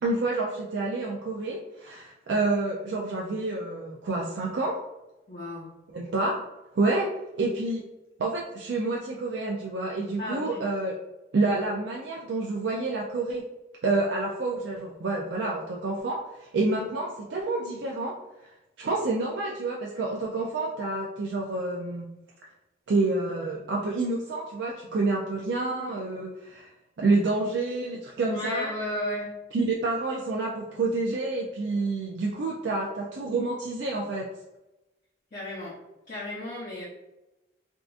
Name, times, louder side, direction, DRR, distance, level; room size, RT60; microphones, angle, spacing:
voice 1, 0.0-4.7 5.9-6.4 6.7-7.1 7.3-7.8 8.2-10.9 11.3-13.4 13.8-18.1 18.8-22.1 22.9-26.7 27.0-28.7 29.5-34.2, right 3 dB, 80° right, -2 dB, 0.4 m, -28 dB
voice 2, 5.3-5.7 10.2-10.7 28.3-29.4 35.3-35.8 36.1-36.9, left 1 dB, 45° left, -7 dB, 0.7 m, -34 dB
3.7 x 2.4 x 2.4 m, 0.96 s
head